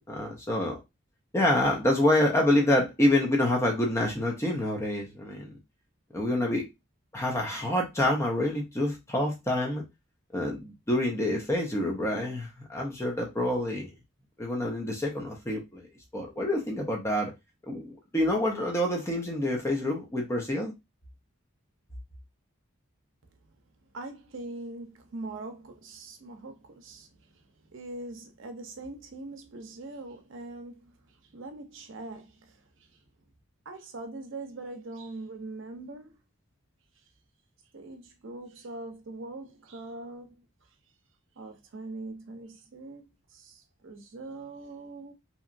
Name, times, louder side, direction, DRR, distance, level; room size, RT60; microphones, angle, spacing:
voice 1, 0.1-0.8 1.3-5.6 6.1-6.6 7.1-9.8 10.3-13.9 14.4-15.9 16.1-17.3 17.7-20.7, left 1 dB, 15° left, 0.5 m, -27 dB
voice 2, 23.9-33.0 33.7-36.2 37.7-40.5 41.4-43.0 43.3-45.1, right 2 dB, 60° right, 0.6 m, -42 dB
2.8 x 2.3 x 2.5 m
head